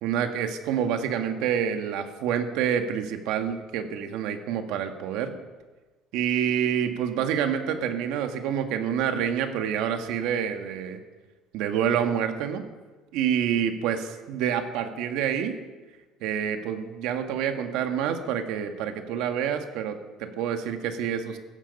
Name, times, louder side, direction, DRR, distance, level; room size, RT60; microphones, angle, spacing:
voice 1, 0.0-5.3 6.1-11.0 11.5-12.6 13.1-15.6 16.2-21.4, right 8 dB, 75° right, 6 dB, 1.8 m, -27 dB
17.0 x 14.5 x 5.5 m, 1.3 s
cardioid pair, 140°, 0 cm